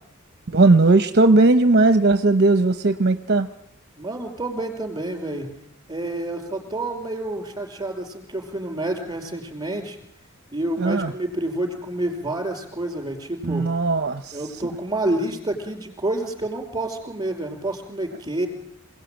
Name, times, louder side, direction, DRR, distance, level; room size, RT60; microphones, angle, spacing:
voice 1, 0.5-3.5 10.8-11.1 13.4-14.4, right 3 dB, 50° right, 10 dB, 0.9 m, -17 dB
voice 2, 4.0-5.5 5.9-10.0 10.5-13.6 14.3-18.5, right 1 dB, 20° right, 4 dB, 5.1 m, -28 dB
26.5 x 18.5 x 9.1 m, 0.76 s
head